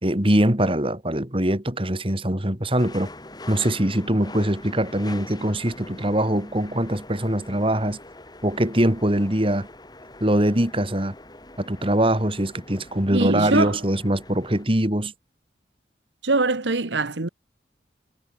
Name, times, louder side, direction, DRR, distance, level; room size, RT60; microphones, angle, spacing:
voice 1, 0.0-3.1 3.5-8.0 8.4-9.7 10.2-11.1 11.6-15.1, right 1 dB, 30° right, 3.7 m, -22 dB
sound 1, 2.8-14.7, left 2 dB, 25° left, 6.2 m, -43 dB
voice 2, 13.1-13.8 16.2-17.3, right 3 dB, 90° right, 1.5 m, -23 dB
head